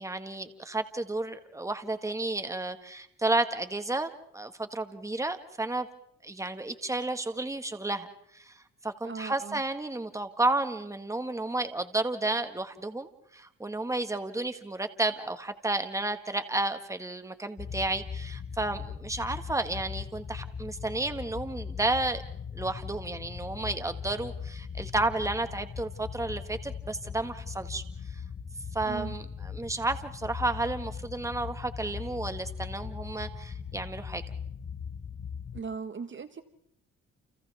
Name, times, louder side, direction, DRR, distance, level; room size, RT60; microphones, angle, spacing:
voice 1, 0.0-5.9 6.2-8.1 8.3-8.5 8.8-22.2 22.5-27.8 28.7-34.2, right 2 dB, 10° right, 8 dB, 1.7 m, -32 dB
voice 2, 9.0-9.6 28.8-29.2 35.5-36.4, right 5 dB, 40° right, 10 dB, 1.5 m, -38 dB
sound 1, 17.6-35.6, left 6 dB, 30° left, 1.0 m, -39 dB
29.5 x 29.5 x 3.6 m, 0.74 s
cardioid pair, 90°, 30 cm